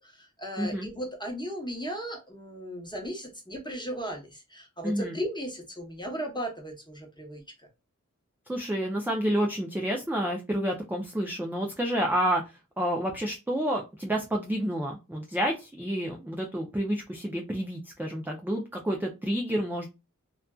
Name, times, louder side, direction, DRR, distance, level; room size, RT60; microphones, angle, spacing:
voice 1, 0.0-7.4, equal, 15° left, 1 dB, 0.9 m, -36 dB
voice 2, 0.6-0.9 4.8-5.2 8.5-12.4 12.8-19.9, equal, 5° right, 0 dB, 0.5 m, -29 dB
2.5 x 2.3 x 2.3 m, 0.26 s
wide cardioid pair, 50°, 31 cm